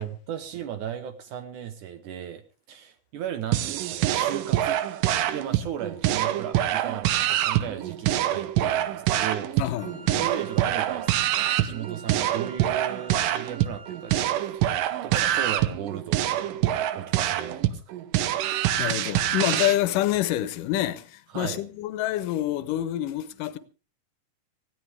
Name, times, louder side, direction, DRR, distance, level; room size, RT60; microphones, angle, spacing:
voice 1, 0.0-2.4 2.7-4.8 5.2-9.7 10.2-14.3 14.5-14.6 15.0-18.0 21.3-21.6, right 9 dB, 70° right, 2.4 m, -36 dB
sound 1, 3.5-19.8, right 13 dB, 85° right, 2.5 m, -25 dB
voice 2, 9.6-10.3 18.5-23.6, left 13 dB, 85° left, 2.5 m, -27 dB
Wind instrument woodwind instrument, 9.8-14.6, right 3 dB, 35° right, 1.4 m, -47 dB
19.5 x 15.5 x 3.4 m
omnidirectional pair, 3.8 m